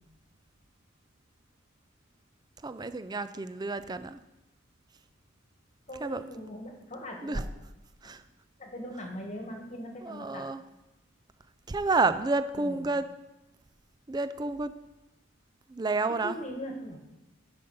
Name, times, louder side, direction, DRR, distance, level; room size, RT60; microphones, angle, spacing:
voice 1, 2.6-4.2 6.0-6.2 7.2-7.4 8.0-8.2 10.0-10.6 11.7-13.0 14.1-14.7 15.7-16.4, right 3 dB, 20° right, 12 dB, 0.4 m, -30 dB
voice 2, 5.9-7.4 8.0-8.1 8.6-10.5 12.6-12.8 16.2-17.0, equal, 35° left, 2 dB, 1.5 m, -40 dB
10.5 x 5.3 x 5.5 m, 1.0 s
head